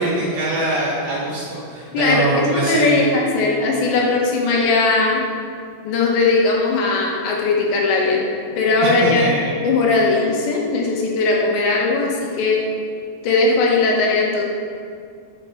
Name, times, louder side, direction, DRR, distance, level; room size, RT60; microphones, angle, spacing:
voice 1, 0.0-3.1 8.8-9.5, right 2 dB, 65° right, -6 dB, 1.7 m, -22 dB
voice 2, 1.9-5.2 5.9-8.3 8.6-9.2 9.6-12.6 13.2-14.4, left 3 dB, 75° left, -1 dB, 3.7 m, -18 dB
10.5 x 7.1 x 7.0 m, 2.2 s
omnidirectional pair, 5.2 m